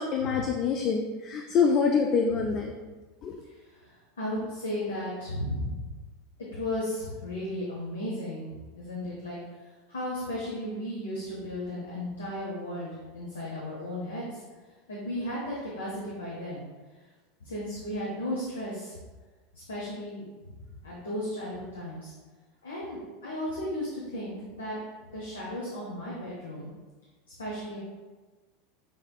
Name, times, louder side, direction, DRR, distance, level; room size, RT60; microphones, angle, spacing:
voice 1, 0.0-2.7 3.2-3.4, left 5 dB, 40° left, 3 dB, 0.3 m, -25 dB
voice 2, 3.4-5.9 6.5-14.4 14.9-16.6 17.4-19.0 19.5-22.1 22.6-24.8 25.1-26.7 27.4-27.8, left 1 dB, 70° left, -5 dB, 0.8 m, -35 dB
5.5 x 3.3 x 2.3 m, 1.3 s
figure-of-eight pair, 80°, 0 cm